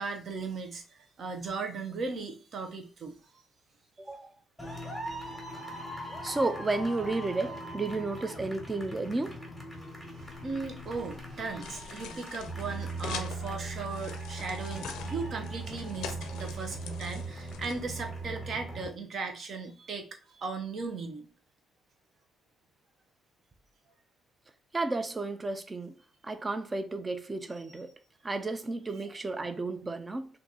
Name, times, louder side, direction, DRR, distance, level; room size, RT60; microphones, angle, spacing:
voice 1, 0.0-3.2 10.4-21.3 28.9-29.0, right 4 dB, 55° right, 0.9 m, -37 dB
voice 2, 4.0-4.3 6.2-9.4 24.7-25.9 26.2-27.9 28.2-30.3, right 3 dB, 20° right, 0.5 m, -32 dB
sound 1, 4.6-18.9, right 2 dB, 5° right, 1.4 m, -40 dB
sound 2, 10.3-18.3, left 7 dB, 85° left, 0.5 m, -45 dB
2.9 x 2.6 x 3.8 m
cardioid pair, 95°, 0 cm